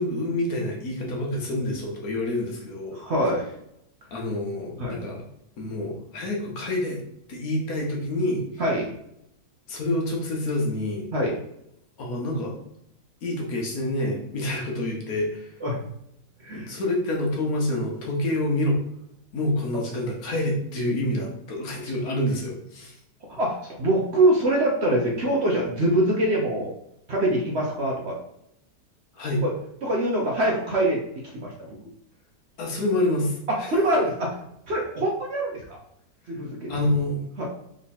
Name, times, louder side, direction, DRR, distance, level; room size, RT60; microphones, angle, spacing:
voice 1, 0.0-3.0 4.1-5.2 5.6-7.0 7.3-8.4 9.7-11.1 12.0-12.6 13.2-15.5 16.5-18.8 19.3-22.9 29.1-29.4 32.6-33.7 36.7-37.3, left 1 dB, 65° left, 0 dB, 1.4 m, -27 dB
voice 2, 2.9-3.4 4.8-5.0 8.6-8.9 11.1-11.4 15.6-15.8 16.4-16.7 23.3-26.7 27.1-28.2 29.4-29.5 29.8-31.0 31.2-31.5 33.7-34.3 34.7-35.8 36.3-36.7 37.4-37.5, right 1 dB, 50° right, -1 dB, 0.9 m, -24 dB
3.7 x 3.2 x 4.2 m, 0.77 s
omnidirectional pair, 1.7 m